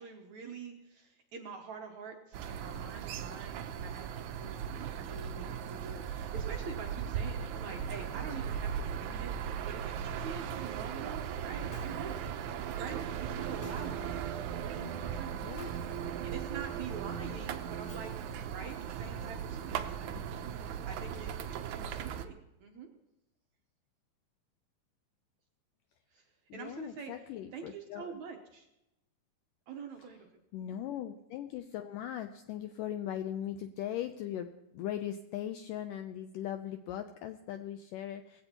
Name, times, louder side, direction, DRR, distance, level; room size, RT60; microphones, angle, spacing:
voice 1, 0.0-4.6 4.9-12.2 12.8-15.3 16.2-18.1 18.5-20.6 20.9-22.9 26.1-26.2 26.5-27.1 27.5-28.7 29.7-30.3 30.6-30.8, right 6 dB, 70° right, 3 dB, 1.8 m, -46 dB
sound 1, 2.3-22.3, right 8 dB, 90° right, 1.6 m, -38 dB
Shatter, 11.7-12.3 13.6-14.2 15.6-16.1 17.9-18.5, left 2 dB, 40° left, 5.5 m, -53 dB
voice 2, 15.3-15.9 26.5-28.2 30.5-38.4, left 11 dB, 85° left, 8 dB, 1.9 m, -39 dB
19.5 x 15.5 x 2.9 m, 0.92 s
omnidirectional pair, 4.4 m